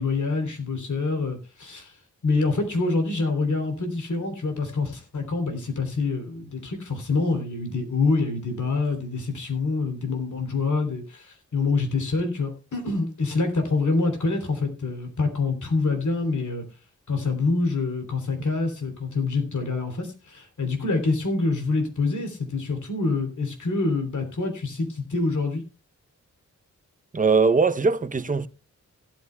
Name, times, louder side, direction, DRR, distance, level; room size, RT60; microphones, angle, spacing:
voice 1, 0.0-1.9 2.2-16.6 17.1-25.6, left 3 dB, 75° left, 3.2 m, -26 dB
voice 2, 27.1-28.5, right 4 dB, 25° right, 0.7 m, -21 dB
16.5 x 12.5 x 2.2 m
wide cardioid pair, 140°, 30 cm